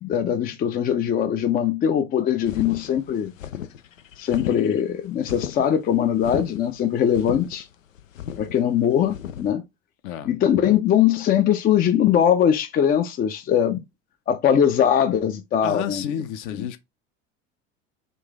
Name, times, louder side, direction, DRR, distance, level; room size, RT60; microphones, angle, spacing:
voice 1, 0.0-3.3 4.2-7.7 8.4-9.6 10.3-13.8 14.3-16.0, left 9 dB, 25° left, 0.5 m, -21 dB
sound 1, 2.5-9.5, left 9 dB, 80° left, 0.5 m, -35 dB
voice 2, 15.6-16.8, left 9 dB, 50° left, 0.7 m, -30 dB
3.9 x 2.5 x 3.6 m
figure-of-eight pair, 70°, 39 cm